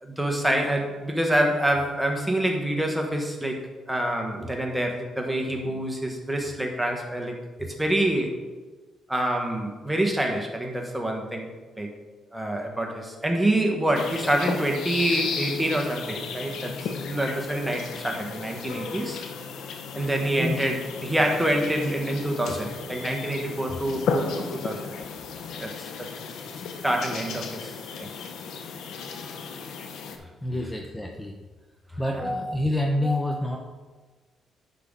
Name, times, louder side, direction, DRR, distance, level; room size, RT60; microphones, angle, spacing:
voice 1, 0.0-8.4 9.1-11.9 12.3-19.2 19.9-24.8 25.6-26.1 26.8-27.7 28.0-28.1 32.1-32.3, right 1 dB, 5° right, 2 dB, 1.5 m, -26 dB
sound 1, 13.9-30.2, left 5 dB, 75° left, 0.9 m, -34 dB
voice 2, 30.4-31.4 32.0-33.6, left 1 dB, 10° left, 2 dB, 0.8 m, -27 dB
10.0 x 5.8 x 3.9 m, 1.3 s
cardioid pair, 90°, 0 cm